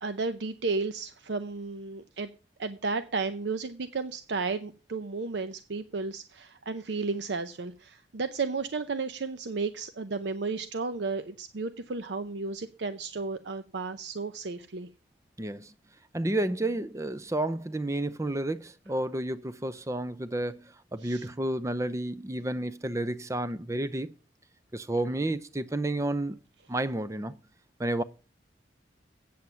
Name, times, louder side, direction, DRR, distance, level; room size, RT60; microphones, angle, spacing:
voice 1, 0.0-2.3 2.6-14.9 21.0-21.3, right 4 dB, 70° right, 0.7 m, -33 dB
voice 2, 15.4-15.7 16.1-24.1 24.7-26.4 26.7-27.4 27.8-28.0, right 1 dB, 15° right, 0.5 m, -31 dB
8.5 x 7.8 x 5.6 m
head